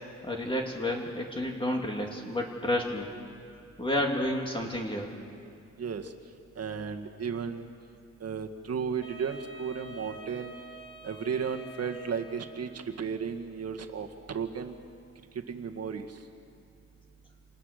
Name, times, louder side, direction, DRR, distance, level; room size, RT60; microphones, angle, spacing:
voice 1, 0.2-3.1 3.8-5.1, left 1 dB, 15° left, 0 dB, 2.4 m, -30 dB
voice 2, 5.8-6.1 6.6-7.7 8.2-10.6 11.0-14.7 15.5-16.2, right 6 dB, 55° right, 4 dB, 1.8 m, -34 dB
Wind instrument woodwind instrument, 9.0-12.9, right 2 dB, 50° left, 3.3 m, -47 dB
28.0 x 27.5 x 6.7 m, 2.5 s
wide cardioid pair, 150°, 29 cm